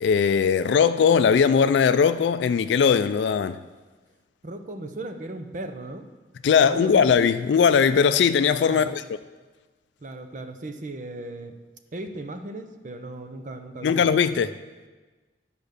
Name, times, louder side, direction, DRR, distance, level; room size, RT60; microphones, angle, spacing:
voice 1, 0.0-3.6 6.4-9.0 13.8-14.5, left 6 dB, 75° left, 0.3 m, -19 dB
voice 2, 4.4-6.0 6.4-7.2 8.7-8.9 10.0-11.5 11.9-14.0 14.3-14.5, right 2 dB, 45° right, 0.7 m, -37 dB
10.5 x 5.2 x 6.6 m
head